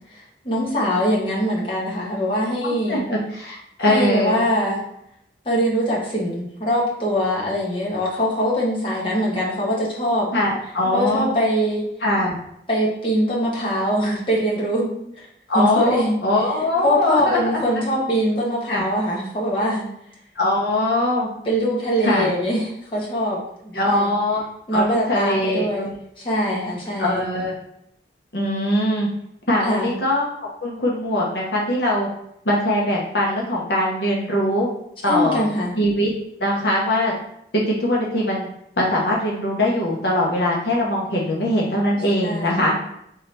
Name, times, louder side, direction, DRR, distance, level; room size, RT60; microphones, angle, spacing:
voice 1, 0.1-3.0 3.9-4.8 5.4-10.3 10.9-11.8 12.7-14.9 15.2-15.3 15.5-16.2 16.8-19.9 21.4-23.4 23.6-24.1 24.7-25.9 26.2-27.3 29.6-29.9 35.1-35.7 42.2-42.6, equal, 30° left, -5 dB, 1.3 m, -22 dB
voice 2, 2.6-4.4 10.3-11.3 12.0-12.3 15.5-17.4 18.7-18.8 20.4-21.3 22.0-22.3 23.7-24.4 24.7-25.9 27.0-27.5 28.3-29.1 29.5-30.2 30.6-32.1 32.4-34.7 35.0-35.4 35.8-36.1 36.4-37.1 37.5-38.5 38.8-42.7, left 1 dB, 65° left, -3 dB, 1.0 m, -21 dB
3.7 x 3.4 x 4.3 m, 0.76 s
head